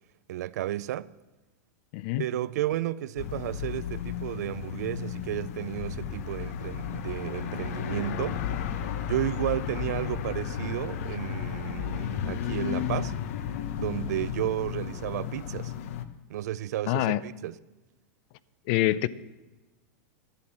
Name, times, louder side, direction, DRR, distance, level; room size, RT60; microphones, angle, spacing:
voice 1, 0.3-1.1 2.2-8.4 9.0-13.1 13.8-15.7 16.3-17.6, right 13 dB, 75° right, 0.4 m, -32 dB
voice 2, 1.9-2.2 16.9-17.2 18.7-19.1, left 15 dB, 35° left, 0.4 m, -25 dB
sound 1, 3.2-16.0, left 9 dB, 55° left, 0.9 m, -33 dB
11.5 x 10.5 x 7.3 m
supercardioid pair, 175°, 9 cm